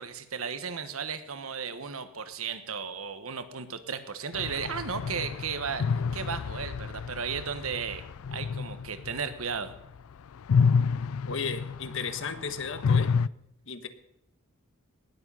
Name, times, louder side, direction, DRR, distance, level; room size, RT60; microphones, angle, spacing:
voice 1, 0.0-8.0 8.3-9.7, right 6 dB, 80° right, 11 dB, 1.3 m, -35 dB
sound 1, 4.3-10.0 10.3-13.3, left 5 dB, 80° left, 0.4 m, -29 dB
voice 2, 11.3-13.1 13.7-13.9, left 5 dB, 65° left, 11 dB, 1.3 m, -34 dB
19.0 x 7.6 x 5.6 m, 0.84 s
head